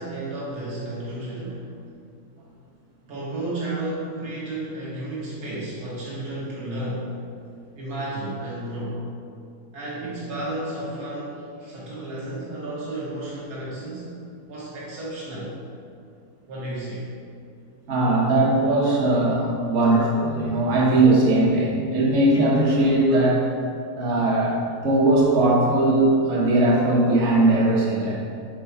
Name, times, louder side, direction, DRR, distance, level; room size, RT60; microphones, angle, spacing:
voice 1, 0.0-1.6 3.1-7.1 7.7-9.0 9.7-14.1 14.5-15.5 16.5-17.1, right 1 dB, 80° right, -7 dB, 1.8 m, -32 dB
voice 2, 17.9-23.4 23.9-28.1, right 2 dB, 50° right, -5 dB, 1.4 m, -19 dB
4.6 x 4.6 x 5.4 m, 2.4 s
omnidirectional pair, 1.6 m